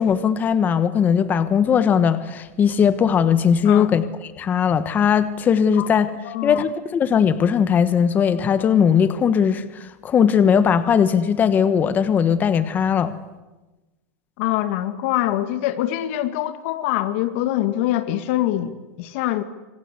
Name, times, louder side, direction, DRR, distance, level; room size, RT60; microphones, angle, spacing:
voice 1, 0.0-6.1 6.4-13.1, left 7 dB, 20° left, 13 dB, 1.2 m, -19 dB
voice 2, 6.3-6.6 14.4-19.4, left 14 dB, 55° left, 11 dB, 2.0 m, -24 dB
26.5 x 26.0 x 8.3 m, 1.1 s
supercardioid pair, 150°, 8 cm